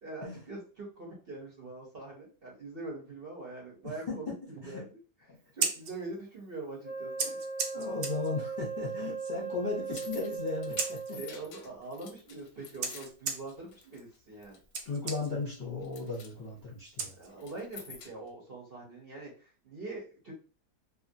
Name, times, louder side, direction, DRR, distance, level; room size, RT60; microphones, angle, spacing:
voice 1, 0.0-4.9 5.5-7.4 11.1-14.6 17.2-20.3, right 2 dB, 45° right, -4 dB, 0.9 m, -43 dB
voice 2, 3.8-4.4 4.6-4.8 5.3-5.4 7.7-11.2 14.8-17.1, left 4 dB, 40° left, -5 dB, 0.8 m, -36 dB
Scissors, 5.4-17.7, right 5 dB, 70° right, 1.1 m, -40 dB
Wind instrument woodwind instrument, 6.8-11.4, right 5 dB, 10° right, 0.6 m, -38 dB
sound 1, 9.7-14.2 14.4-14.9 15.3-15.5 15.8-16.3 17.3-18.3, left 6 dB, 70° left, 0.9 m, -50 dB
2.9 x 2.5 x 2.6 m, 0.36 s
omnidirectional pair, 1.8 m